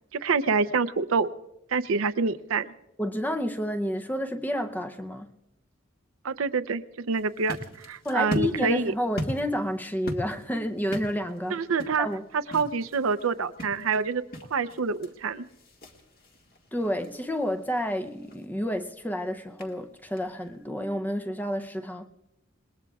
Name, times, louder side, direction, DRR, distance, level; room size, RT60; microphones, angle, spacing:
voice 1, 0.1-1.3 1.7-2.7 6.2-6.8 7.1-8.9 11.5-12.1 12.3-14.2 14.5-15.5, right 5 dB, 90° right, 0.6 m, -26 dB
voice 2, 3.0-5.4 8.0-11.6 12.0-12.2 16.7-22.1, equal, 10° left, 0.6 m, -30 dB
sound 1, 7.1-20.7, left 1 dB, 45° left, 1.8 m, -41 dB
28.5 x 20.0 x 2.4 m
head